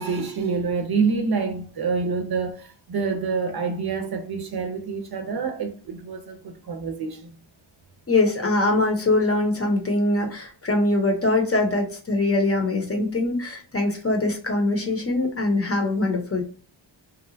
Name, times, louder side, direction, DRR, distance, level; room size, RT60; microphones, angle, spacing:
voice 1, 0.0-7.3, right 5 dB, 55° right, 0.6 m, -27 dB
voice 2, 8.1-16.4, left 2 dB, 30° left, 0.7 m, -23 dB
2.8 x 2.2 x 2.5 m
wide cardioid pair, 135°, 46 cm